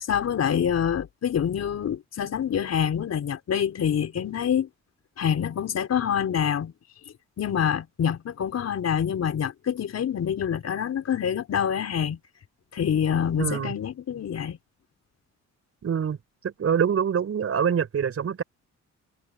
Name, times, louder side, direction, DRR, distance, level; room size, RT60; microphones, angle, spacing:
voice 1, 0.1-4.7 5.2-6.7 7.4-12.2 12.7-14.6, left 8 dB, 55° left, 4.7 m, -26 dB
voice 2, 13.4-13.7 15.8-16.2 16.4-18.4, right 7 dB, 50° right, 5.5 m, -25 dB
cardioid pair, 90°, 30 cm